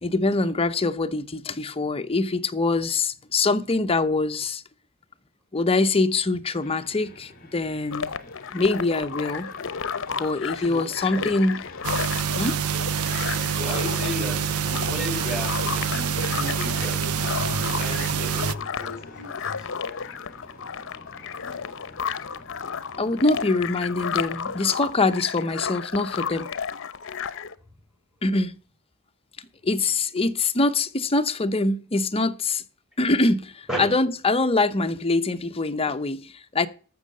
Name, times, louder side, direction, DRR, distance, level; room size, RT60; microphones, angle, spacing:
voice 1, 0.0-4.6 5.5-8.1 8.5-9.5 10.1-11.6 12.3-12.6 23.0-26.5 28.2-28.5 29.6-32.6 33.0-36.7, left 3 dB, 25° left, 0.8 m, -24 dB
Fixed-wing aircraft airplane, 6.6-24.6, left 2 dB, 40° left, 2.4 m, -45 dB
sound 1, 7.9-27.5, left 6 dB, 60° left, 0.9 m, -33 dB
sound 2, 11.8-18.6, right 8 dB, 85° right, 0.6 m, -26 dB
voice 2, 13.6-14.6 14.8-19.7 33.7-33.9, left 1 dB, 5° right, 7.1 m, -34 dB
14.0 x 6.3 x 6.6 m
head